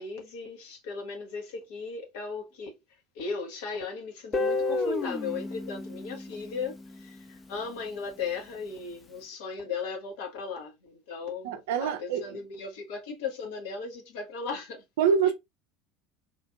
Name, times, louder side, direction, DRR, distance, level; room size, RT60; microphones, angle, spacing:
voice 1, 0.0-2.8 3.1-14.8, left 5 dB, 65° left, 1.0 m, -37 dB
Guitar, 4.3-7.3, left 3 dB, 25° left, 0.6 m, -31 dB
voice 2, 11.4-12.4 15.0-15.3, right 7 dB, 70° right, 0.5 m, -25 dB
3.0 x 2.5 x 2.4 m
figure-of-eight pair, 70°, 0 cm